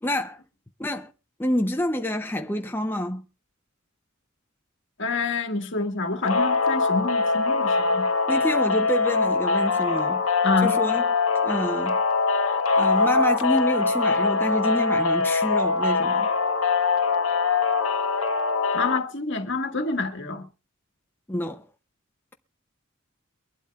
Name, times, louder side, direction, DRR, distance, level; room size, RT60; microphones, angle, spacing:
voice 1, 0.0-0.4 0.8-1.1 1.4-3.2 8.3-10.2 10.6-11.0 11.4-12.0 12.8-16.3 21.3-21.6, left 1 dB, 10° left, 0.6 m, -27 dB
voice 2, 5.0-8.1 10.4-10.7 18.7-20.5, left 3 dB, 60° left, 1.8 m, -27 dB
sound 1, 6.2-19.0, left 4 dB, 80° left, 1.2 m, -23 dB
23.5 x 12.0 x 2.3 m
head